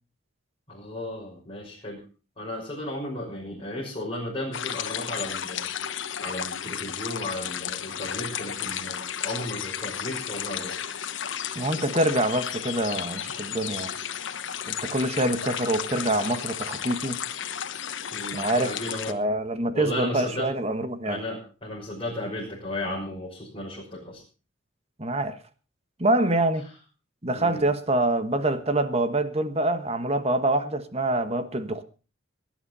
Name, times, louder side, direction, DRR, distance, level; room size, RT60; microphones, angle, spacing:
voice 1, 0.7-2.0 2.4-5.7 6.2-10.7 18.1-19.2 19.7-20.5 21.0-24.2 27.3-27.6, left 1 dB, 25° left, 6.0 m, -34 dB
sound 1, 4.5-19.1, left 9 dB, 75° left, 1.2 m, -33 dB
voice 2, 11.5-14.0 14.7-17.2 18.3-18.8 19.1-21.2 25.0-25.4 26.0-26.7 27.2-31.8, right 1 dB, 30° right, 1.4 m, -25 dB
18.5 x 11.0 x 5.5 m
head